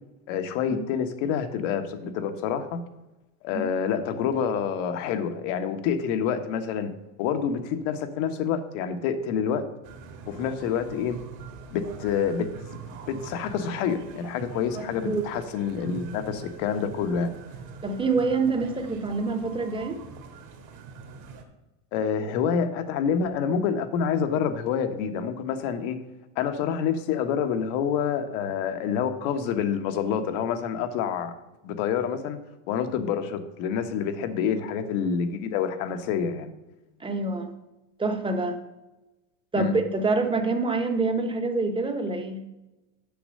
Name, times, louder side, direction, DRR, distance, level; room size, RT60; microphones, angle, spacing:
voice 1, 0.3-2.8 3.4-6.9 7.2-9.6 10.3-11.2 11.7-12.5 13.1-17.3 21.9-26.0 26.4-31.3 31.6-32.4 32.7-36.5 39.6-39.8, left 7 dB, 70° left, 8 dB, 1.1 m, -27 dB
sound 1, 9.8-21.4, right 5 dB, 50° right, 1.6 m, -43 dB
voice 2, 14.7-15.2 17.8-20.0 37.0-37.5 38.0-38.6 39.5-42.4, right 3 dB, 15° right, 7 dB, 0.9 m, -26 dB
7.0 x 6.1 x 6.5 m, 1.0 s
supercardioid pair, 120°, 39 cm